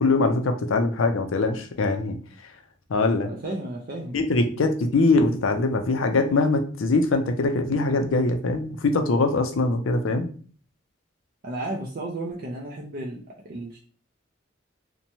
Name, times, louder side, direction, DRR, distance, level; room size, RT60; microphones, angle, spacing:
voice 1, 0.0-2.2 2.9-3.3 4.1-10.3, left 3 dB, 85° left, 6 dB, 0.5 m, -22 dB
voice 2, 3.2-4.2 11.4-13.8, right 1 dB, 45° right, -1 dB, 0.4 m, -33 dB
2.9 x 2.2 x 2.6 m, 0.43 s
head